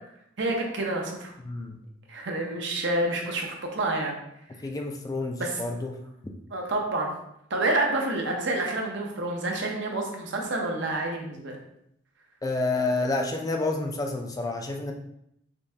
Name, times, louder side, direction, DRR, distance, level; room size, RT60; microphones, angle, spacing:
voice 1, 0.4-1.3 2.1-4.2 5.4-5.6 6.5-7.1 7.5-11.6, right 2 dB, 65° right, 1 dB, 0.7 m, -28 dB
voice 2, 1.4-1.8 4.6-6.0 12.4-14.9, left 2 dB, 20° left, 3 dB, 0.3 m, -29 dB
5.1 x 2.2 x 2.7 m, 0.76 s
head